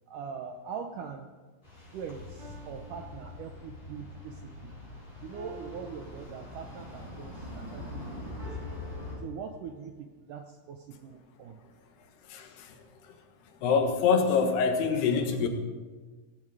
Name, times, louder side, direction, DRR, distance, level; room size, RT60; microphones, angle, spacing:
voice 1, 0.1-1.3 1.9-4.8 5.2-8.8 9.2-11.6, right 6 dB, 75° right, 5 dB, 1.9 m, -42 dB
tram arrives, 1.6-9.1, left 2 dB, 15° left, 5.9 m, -43 dB
sound 1, 2.4-4.0 5.3-7.0 8.4-10.0, right 1 dB, 45° right, 6.1 m, -52 dB
voice 2, 12.3-12.8 13.6-15.5, left 5 dB, 80° left, 5 dB, 3.5 m, -25 dB
16.5 x 15.5 x 4.9 m, 1.4 s
omnidirectional pair, 4.7 m